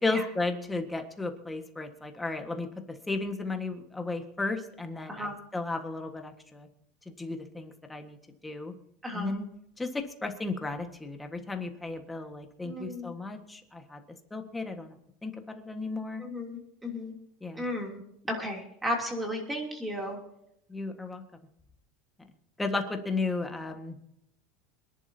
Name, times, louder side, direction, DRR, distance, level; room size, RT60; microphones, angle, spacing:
voice 1, 0.0-6.7 7.0-8.2 8.4-8.7 9.1-9.5 9.8-14.0 14.3-15.0 15.2-16.2 17.4-17.6 20.7-21.2 22.6-24.0, left 3 dB, 10° left, 5 dB, 1.6 m, -34 dB
voice 2, 12.6-13.1 16.2-17.1 17.6-18.0 18.3-20.2, left 1 dB, 10° right, 1 dB, 3.0 m, -34 dB
26.0 x 11.0 x 2.8 m, 0.76 s
supercardioid pair, 145°, 0 cm